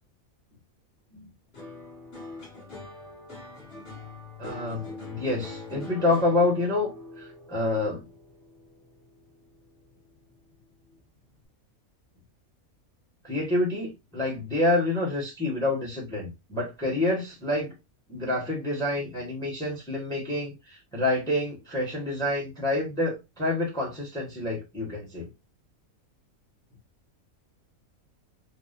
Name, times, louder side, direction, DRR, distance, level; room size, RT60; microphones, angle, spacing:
sound 1, 1.5-10.0 10.3-11.0, left 3 dB, 45° left, 1.5 m, -43 dB
voice 1, 4.4-8.0 13.2-17.7 18.1-25.3, left 2 dB, 5° left, 1.0 m, -28 dB
3.6 x 2.3 x 2.6 m
omnidirectional pair, 1.5 m